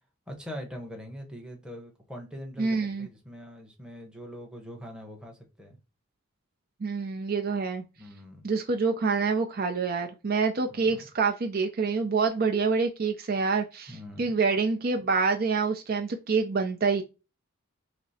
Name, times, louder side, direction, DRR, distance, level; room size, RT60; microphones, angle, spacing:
voice 1, 0.3-5.8 8.0-8.4 10.7-11.0 13.9-14.3, equal, 5° right, 0.9 m, -42 dB
voice 2, 2.6-3.1 6.8-7.8 8.4-13.9 14.2-17.0, right 4 dB, 45° right, 0.5 m, -26 dB
5.9 x 2.0 x 4.1 m
head